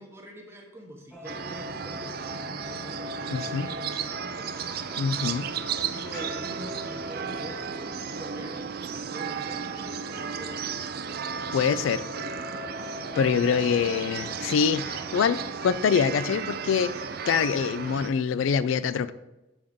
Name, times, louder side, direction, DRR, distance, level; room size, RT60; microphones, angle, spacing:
voice 1, 0.0-4.7 5.9-8.6 9.1-10.7, right 1 dB, 10° right, 0 dB, 0.9 m, -45 dB
sound 1, 1.1-15.7, left 2 dB, 5° left, 0.6 m, -44 dB
sound 2, 1.2-18.1, right 6 dB, 50° right, 0.4 m, -34 dB
voice 2, 3.3-3.7 5.0-5.5 11.5-12.0 13.2-16.9 17.3-19.1, left 6 dB, 80° left, 16 dB, 0.3 m, -25 dB
6.9 x 3.6 x 5.2 m, 0.99 s
head